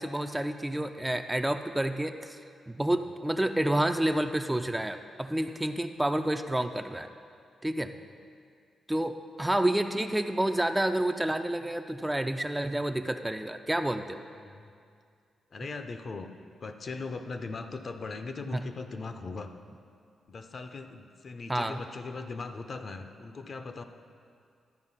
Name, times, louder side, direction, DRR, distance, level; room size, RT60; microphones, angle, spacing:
voice 1, 0.0-2.4 2.7-7.1 7.6-7.9 8.9-14.2 18.5-18.6 21.5-21.8, right 1 dB, 10° right, 7 dB, 0.4 m, -29 dB
voice 2, 14.3-14.7 15.5-16.3 16.6-19.5 20.3-23.8, left 3 dB, 50° left, 7 dB, 0.6 m, -39 dB
12.5 x 4.4 x 5.6 m, 2.3 s
cardioid pair, 85°, 0 cm